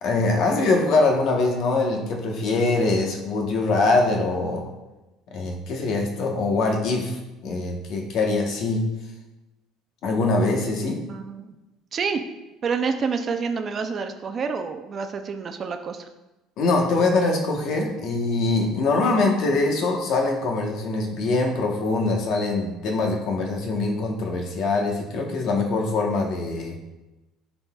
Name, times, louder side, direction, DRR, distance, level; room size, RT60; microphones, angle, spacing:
voice 1, 0.0-4.7 5.3-8.9 10.0-11.0 16.6-26.8, left 3 dB, 50° left, 2 dB, 1.1 m, -23 dB
voice 2, 11.1-11.5 11.9-12.2 12.6-16.1, right 5 dB, 30° right, 7 dB, 0.4 m, -28 dB
11.0 x 4.0 x 2.3 m, 1.0 s
cardioid pair, 155°, 0 cm